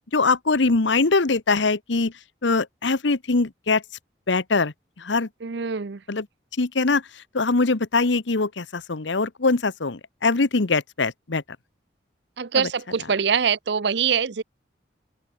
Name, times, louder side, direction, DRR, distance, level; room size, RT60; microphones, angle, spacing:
voice 1, 0.1-2.1 2.4-3.8 4.3-5.3 6.1-6.2 6.6-7.0 7.3-11.4 12.5-12.7, left 3 dB, 75° left, 1.0 m, -22 dB
voice 2, 5.4-6.0 12.4-14.4, right 6 dB, 65° right, 0.6 m, -24 dB
open air
head